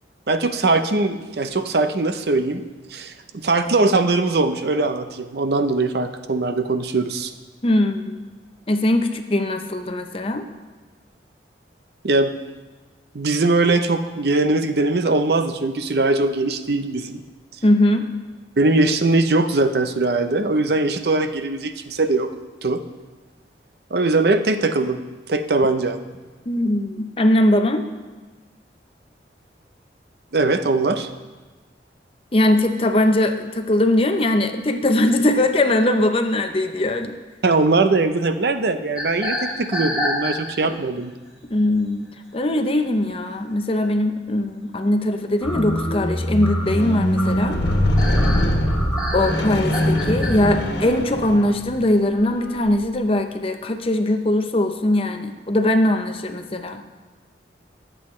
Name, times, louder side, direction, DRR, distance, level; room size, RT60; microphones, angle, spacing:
voice 1, 0.3-2.6 2.9-7.3 12.0-12.3 13.1-17.2 18.6-22.3 22.6-22.8 23.9-25.0 25.3-26.0 30.3-31.1 37.4-41.1, right 3 dB, 60° right, 9 dB, 0.6 m, -21 dB
voice 2, 7.6-8.3 8.7-10.4 17.6-18.1 26.5-27.8 32.3-37.1 41.5-47.6 49.1-56.8, left 1 dB, 30° left, 7 dB, 0.6 m, -20 dB
sound 1, 39.0-40.7 41.3-41.5 43.0-43.1 43.5-43.6 45.4-50.3, left 1 dB, 5° right, 3.7 m, -28 dB
Squeak, 45.4-51.8 52.6-52.7, equal, 75° left, 1.4 m, -22 dB
20.0 x 7.8 x 3.2 m, 1.3 s
head